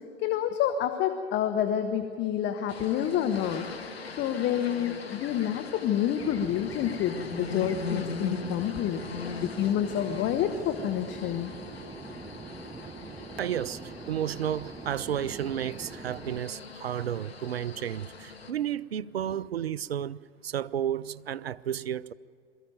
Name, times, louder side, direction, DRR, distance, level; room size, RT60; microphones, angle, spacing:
voice 1, 0.2-3.7 4.1-9.0 9.4-11.5, left 10 dB, 35° left, 1.1 m, -28 dB
sound 1, 2.7-18.5, left 4 dB, 85° left, 1.3 m, -40 dB
Fixed-wing aircraft airplane, 6.2-16.4, right 4 dB, 10° right, 0.8 m, -43 dB
voice 2, 13.4-22.1, right 10 dB, 85° right, 0.5 m, -32 dB
22.5 x 14.5 x 9.2 m
figure-of-eight pair, 80°, 30 cm